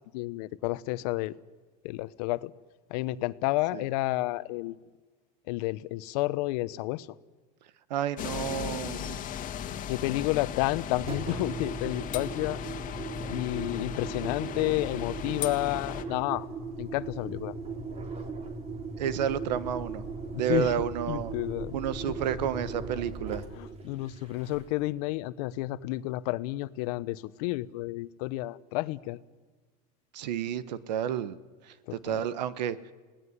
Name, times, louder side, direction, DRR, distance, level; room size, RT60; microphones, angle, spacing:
voice 1, 0.1-1.3 1.8-2.5 2.9-4.8 5.5-7.1 9.9-12.6 13.3-16.5 16.8-17.5 20.3-20.8 21.1-21.8 23.5-29.2 31.9-32.2, left 18 dB, 70° left, 15 dB, 1.0 m, -31 dB
voice 2, 7.9-9.2 19.0-20.0 20.3-21.3 21.7-23.4 30.1-31.4 31.9-32.9, right 9 dB, 85° right, 15 dB, 1.3 m, -30 dB
sound 1, 8.2-16.0, left 9 dB, 40° left, 1.8 m, -37 dB
Engine, 10.9-24.9, right 4 dB, 30° right, 3.4 m, -38 dB
30.0 x 18.5 x 9.7 m, 1.4 s
supercardioid pair, 115°, 21 cm